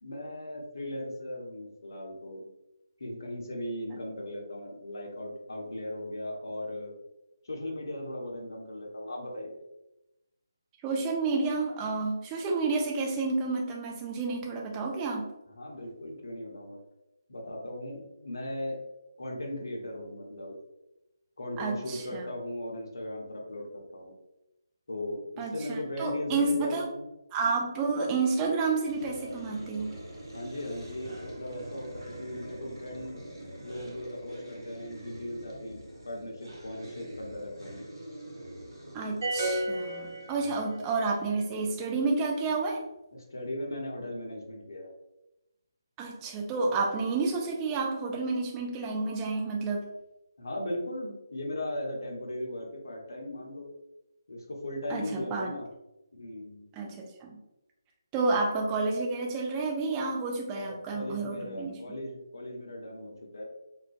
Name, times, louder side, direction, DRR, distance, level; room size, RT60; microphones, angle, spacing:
voice 1, 0.0-2.5 3.0-6.9 7.4-9.6 15.5-16.8 17.3-18.8 19.2-20.6 21.4-24.1 24.9-27.1 30.3-33.2 33.6-35.8 36.0-37.8 40.4-40.6 43.3-44.9 50.4-53.7 54.3-55.7 56.1-56.7 60.5-63.4, left 1 dB, 60° left, -1 dB, 0.6 m, -38 dB
voice 2, 10.8-15.3 21.6-22.2 25.4-26.9 27.3-30.0 38.9-42.9 46.0-49.9 54.9-55.5 56.7-57.4 58.1-61.8, right 3 dB, 15° right, -1 dB, 0.3 m, -30 dB
sound 1, 28.9-41.8, right 1 dB, 80° right, 0.7 m, -45 dB
sound 2, 39.2-40.9, right 1 dB, 35° right, 1.2 m, -32 dB
2.4 x 2.1 x 2.4 m, 0.93 s
figure-of-eight pair, 150°, 2 cm